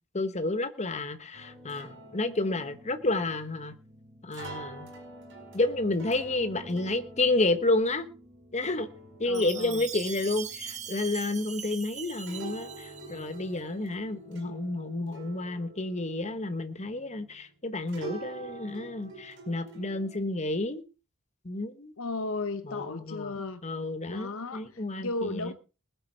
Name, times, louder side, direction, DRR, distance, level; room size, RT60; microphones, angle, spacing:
voice 1, 0.1-3.7 4.2-4.9 5.5-8.1 8.5-8.9 9.2-20.8 21.4-21.9 22.6-25.5, left 2 dB, 30° left, 1.2 m, -30 dB
sound 1, 1.3-17.6 17.9-20.2, right 2 dB, 55° right, 4.7 m, -47 dB
voice 2, 9.3-9.8 22.0-23.6 24.1-25.5, left 3 dB, 65° left, 0.9 m, -35 dB
Chime, 9.3-13.5, right 8 dB, 30° right, 1.3 m, -41 dB
20.0 x 8.1 x 4.5 m
head